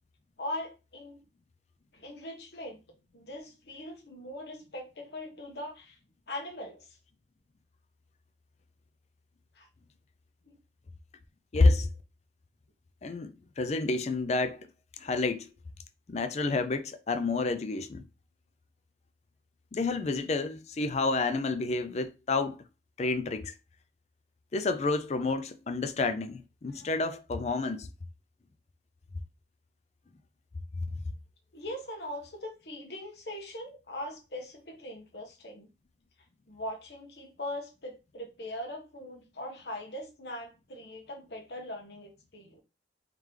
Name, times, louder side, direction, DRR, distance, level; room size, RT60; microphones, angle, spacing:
voice 1, 0.4-1.2 1.9-2.8 3.1-6.0 6.3-7.0 9.5-9.7 10.5-10.6 23.0-23.1 26.7-26.9 31.5-35.7 36.5-42.6, left 1 dB, 60° left, 1.1 m, -41 dB
voice 2, 11.5-11.9 13.0-14.6 15.0-15.5 16.1-18.0 19.7-22.6 23.0-23.5 24.5-27.9, left 3 dB, 35° left, 0.4 m, -29 dB
3.7 x 3.2 x 3.2 m
head